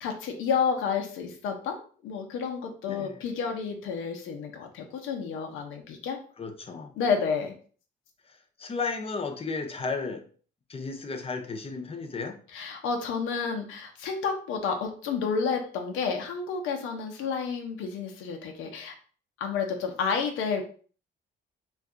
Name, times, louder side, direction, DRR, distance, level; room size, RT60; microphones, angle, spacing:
voice 1, 0.0-1.8 2.0-6.2 7.0-7.6 12.5-18.9 19.4-20.6, left 6 dB, 90° left, 4 dB, 0.7 m, -30 dB
voice 2, 2.9-3.2 6.4-7.0 8.3-10.3 10.7-12.4, left 4 dB, 30° left, 5 dB, 0.6 m, -34 dB
2.6 x 2.4 x 3.6 m, 0.42 s
cardioid pair, 90°, 20 cm